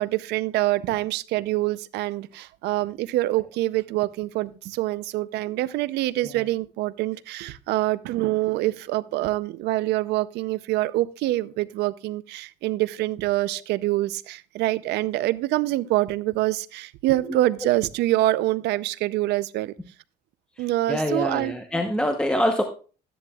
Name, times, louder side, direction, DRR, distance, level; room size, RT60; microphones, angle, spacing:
voice 1, 0.0-19.7 20.6-21.6, right 16 dB, 80° right, 17 dB, 0.6 m, -25 dB
voice 2, 20.6-22.6, equal, 5° left, 5 dB, 0.9 m, -25 dB
13.0 x 10.0 x 2.3 m, 0.37 s
cardioid pair, 110°, 17 cm